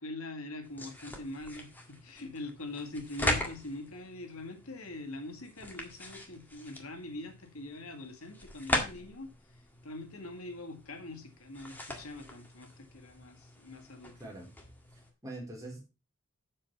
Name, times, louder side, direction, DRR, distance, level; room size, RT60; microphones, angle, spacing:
voice 1, 0.0-14.2, left 2 dB, 80° left, 6 dB, 2.0 m, -43 dB
sound 1, 0.6-15.1, left 1 dB, 10° left, 1.8 m, -40 dB
voice 2, 14.2-14.5 14.9-15.8, right 2 dB, 15° right, -1 dB, 4.1 m, -44 dB
7.7 x 7.1 x 5.8 m, 0.29 s
head